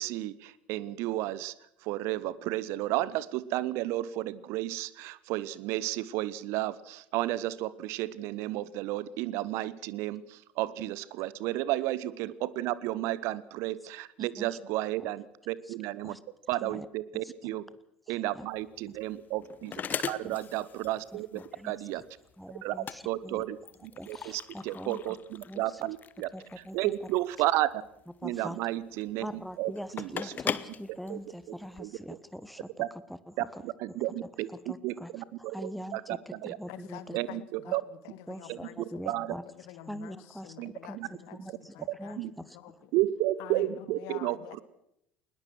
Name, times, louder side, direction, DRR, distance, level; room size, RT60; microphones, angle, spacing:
voice 1, 0.0-1.5 1.8-16.2 16.5-17.7 18.1-19.8 20.1-22.0 22.6-22.7 23.0-23.6 23.8-26.3 26.7-27.8 28.2-30.3 31.1-31.2 31.8-32.2 32.8-32.9 33.6-34.5 34.8-36.6 37.1-37.8 38.5-38.6 39.1-39.3 40.6-41.1 42.2-42.3 42.9-44.6, right 15 dB, 50° right, 19 dB, 0.8 m, -32 dB
voice 2, 18.1-18.4 19.9-20.4 21.1-21.8 22.4-23.4 23.9-25.0 25.5-25.8 26.3-26.9 28.2-28.6 29.2-32.8 33.1-33.6 34.5-35.1 35.4-37.2 37.6-37.7 38.3-39.4 39.8-42.9, equal, ahead, 15 dB, 1.2 m, -43 dB
sound 1, 18.5-31.8, left 7 dB, 30° left, 0.9 m, -40 dB
voice 3, 36.7-41.4 41.7-42.9 43.4-44.6, left 13 dB, 55° left, 14 dB, 1.5 m, -47 dB
20.5 x 20.0 x 6.3 m, 0.79 s
figure-of-eight pair, 70°, 6 cm